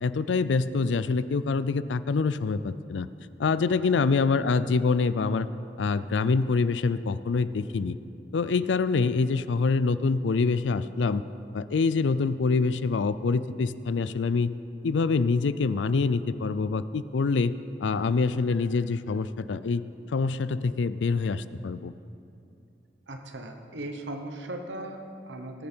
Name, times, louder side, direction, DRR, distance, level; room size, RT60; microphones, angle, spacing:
voice 1, 0.0-3.1 3.4-5.5 5.8-8.0 8.3-11.2 11.5-14.5 14.8-17.5 17.8-19.8 20.1-21.9, left 4 dB, 90° left, 14 dB, 0.4 m, -25 dB
voice 2, 23.1-25.7, right 1 dB, 85° right, 5 dB, 1.1 m, -38 dB
19.5 x 8.5 x 4.5 m, 2.7 s
head